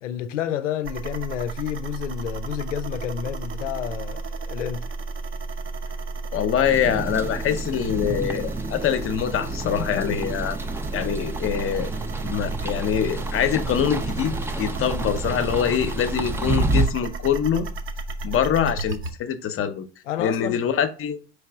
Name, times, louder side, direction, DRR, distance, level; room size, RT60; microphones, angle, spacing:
voice 1, 0.0-4.9 20.1-20.6, left 10 dB, 90° left, 0.5 m, -30 dB
sound 1, 0.8-19.1, right 3 dB, 35° right, 0.8 m, -33 dB
voice 2, 6.3-10.6 10.9-11.9 12.2-17.7 18.2-19.8 20.2-21.2, left 8 dB, 35° left, 0.7 m, -24 dB
sound 2, 6.6-16.9, right 2 dB, 5° right, 0.4 m, -29 dB
4.7 x 3.4 x 3.4 m
hypercardioid pair, 75°, 36 cm